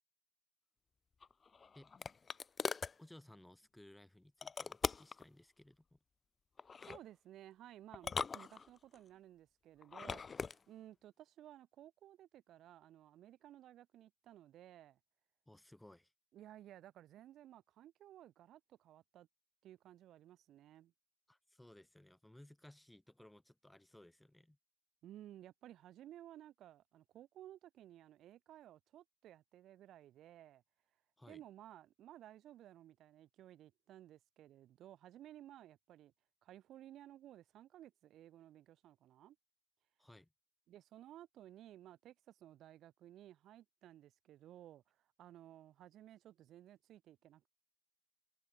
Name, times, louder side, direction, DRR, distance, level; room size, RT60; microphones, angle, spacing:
sound 1, 1.2-3.0 4.4-5.2 6.6-7.0 7.9-9.0 9.8-10.6, left 5 dB, 30° left, 0.3 m, -41 dB
voice 1, 3.0-6.0 15.5-16.1 21.3-24.6 31.2-31.4 40.0-40.3, left 1 dB, 5° left, 4.6 m, -60 dB
voice 2, 6.8-15.0 16.3-19.3 19.6-20.9 25.0-30.6 31.2-36.1 36.4-39.4 40.7-47.5, right 12 dB, 65° right, 1.9 m, -57 dB
cardioid pair, 125°, 0 cm